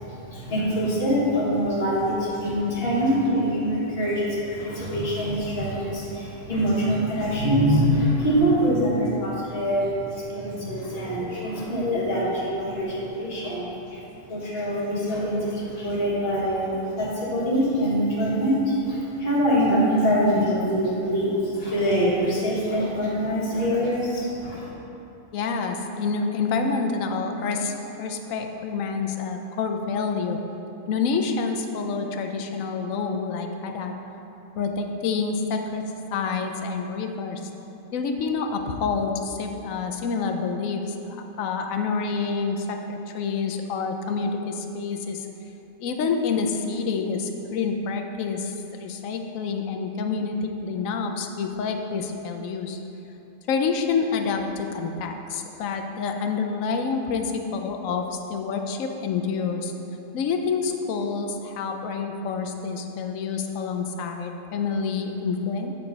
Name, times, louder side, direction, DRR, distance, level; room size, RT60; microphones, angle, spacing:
voice 1, 0.0-14.0 14.3-24.7, equal, 45° left, -8 dB, 1.8 m, -24 dB
voice 2, 25.3-30.4 30.9-33.9 34.5-35.8 36.1-37.4 37.9-45.3 45.8-52.8 53.5-59.7 60.1-65.7, left 5 dB, 75° left, 4 dB, 1.0 m, -28 dB
8.6 x 3.9 x 4.7 m, 3.0 s
omnidirectional pair, 1.4 m